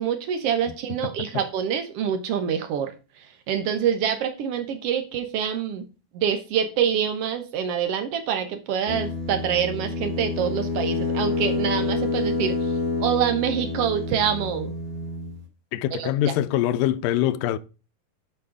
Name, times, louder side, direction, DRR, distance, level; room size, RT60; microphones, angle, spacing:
voice 1, 0.0-2.9 3.2-5.8 6.1-12.7 13.0-14.7 16.0-16.3, right 8 dB, 90° right, 1.3 m, -26 dB
sound 1, 8.9-15.4, left 3 dB, 20° right, 1.2 m, -28 dB
voice 2, 15.7-17.6, left 12 dB, 85° left, 2.2 m, -23 dB
9.5 x 5.3 x 4.8 m
omnidirectional pair, 4.1 m